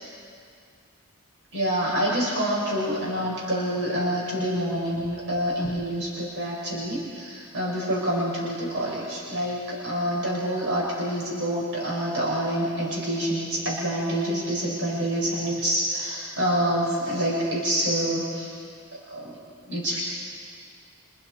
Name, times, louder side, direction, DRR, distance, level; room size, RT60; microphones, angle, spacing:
voice 1, 1.5-18.5 19.1-19.3 19.7-20.0, equal, 60° right, -5 dB, 6.0 m, -27 dB
28.0 x 27.0 x 4.6 m, 2.3 s
head